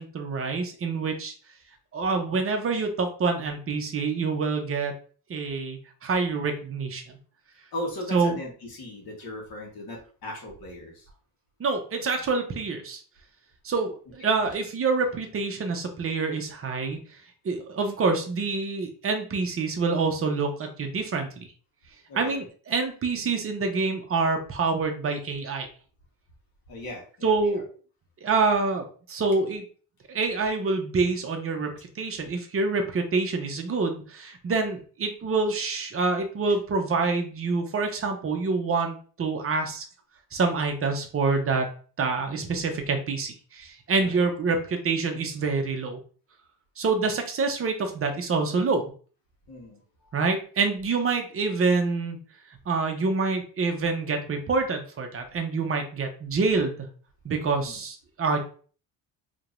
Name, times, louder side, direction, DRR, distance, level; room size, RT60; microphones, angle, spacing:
voice 1, 0.0-1.3 1.9-4.9 5.3-7.2 8.1-8.4 11.6-13.0 13.6-17.0 17.4-21.5 22.2-25.7 27.2-27.7 28.2-29.6 30.1-39.8 40.3-41.7 42.0-46.0 46.8-48.8 50.1-52.2 52.5-56.9 57.2-58.4, right 4 dB, 30° right, 4 dB, 0.7 m, -26 dB
voice 2, 7.7-11.1 14.2-14.4 22.1-22.4 26.7-27.6 44.0-44.2 49.5-50.2 57.5-57.8, left 1 dB, 55° left, -1 dB, 1.4 m, -38 dB
5.0 x 2.9 x 2.5 m, 0.41 s
cardioid pair, 160°, 42 cm